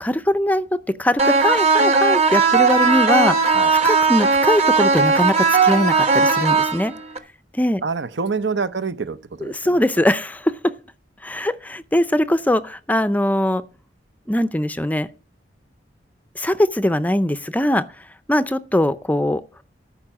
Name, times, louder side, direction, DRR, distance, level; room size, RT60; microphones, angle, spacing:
voice 1, 0.0-3.5 3.8-6.9 7.5-7.8 9.4-10.7 11.2-13.6 14.3-15.1 16.4-19.4, left 1 dB, 10° left, 0.5 m, -21 dB
sound 1, 1.2-7.2, right 4 dB, 35° right, 1.2 m, -17 dB
voice 2, 3.5-3.9 7.8-10.1, right 4 dB, 70° right, 0.8 m, -27 dB
13.5 x 5.5 x 7.1 m
head